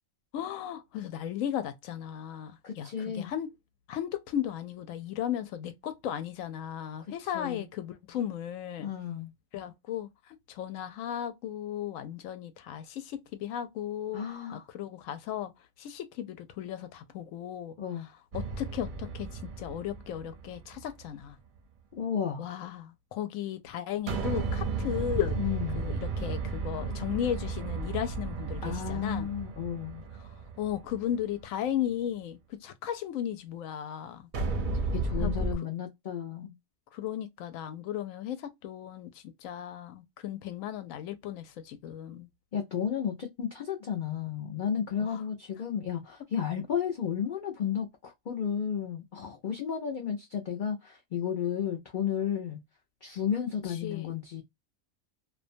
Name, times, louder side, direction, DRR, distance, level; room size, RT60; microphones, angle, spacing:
voice 1, 0.3-3.5 3.9-8.9 9.5-14.2 14.5-15.5 15.8-17.7 18.3-21.4 22.4-25.4 25.7-29.3 30.6-34.2 34.7-34.9 35.2-35.7 36.9-42.3 45.0-45.2 53.7-54.1, left 10 dB, 85° left, 1.0 m, -35 dB
voice 2, 2.6-3.3 7.3-7.7 8.8-9.3 14.1-14.6 17.8-18.1 21.9-22.4 25.4-25.8 28.6-30.0 34.9-36.5 42.5-52.6 53.0-54.4, left 8 dB, 55° left, 0.5 m, -33 dB
sound 1, 18.3-20.9 24.1-31.3 34.3-35.5, right 3 dB, 50° right, 0.6 m, -34 dB
2.5 x 2.2 x 2.5 m
omnidirectional pair, 1.3 m